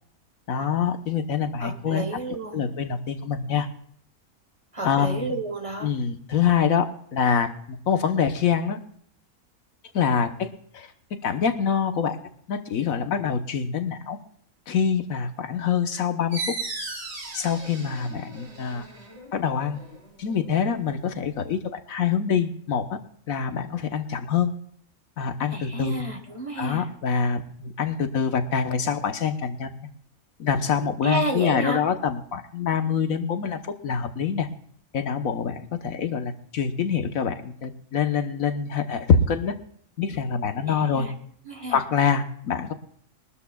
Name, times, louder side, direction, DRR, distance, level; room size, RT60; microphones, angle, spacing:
voice 1, 0.5-2.0 2.3-3.7 4.8-5.3 5.8-8.8 9.9-10.9 11.2-14.2 14.7-16.4 17.3-18.9 19.3-19.8 20.2-23.0 23.3-24.5 25.2-26.0 26.6-29.7 30.4-34.5 34.9-39.6 40.0-41.1 41.7-42.7, left 7 dB, 70° left, 8 dB, 1.3 m, -25 dB
voice 2, 1.6-2.7 4.7-5.9 25.5-26.9 31.0-31.8 40.6-41.1 41.4-41.8, right 2 dB, 25° right, 5 dB, 1.2 m, -31 dB
sound 1, 16.3-21.6, right 3 dB, 45° right, 2.4 m, -38 dB
23.0 x 12.5 x 2.3 m, 0.62 s
omnidirectional pair, 1.5 m